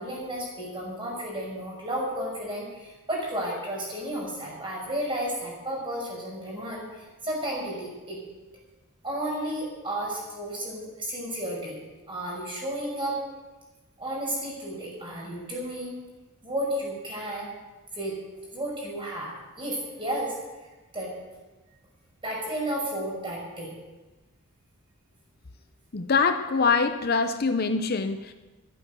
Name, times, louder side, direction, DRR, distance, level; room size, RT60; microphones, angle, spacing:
voice 1, 0.0-8.2 9.0-11.8 12.1-13.2 14.0-16.0 16.4-17.5 17.9-18.1 18.5-20.3 20.9-21.1 22.2-23.7, right 1 dB, 25° right, -3 dB, 5.9 m, -32 dB
voice 2, 25.9-28.3, left 4 dB, 45° left, 8 dB, 0.7 m, -24 dB
14.0 x 12.0 x 6.8 m, 1.2 s
head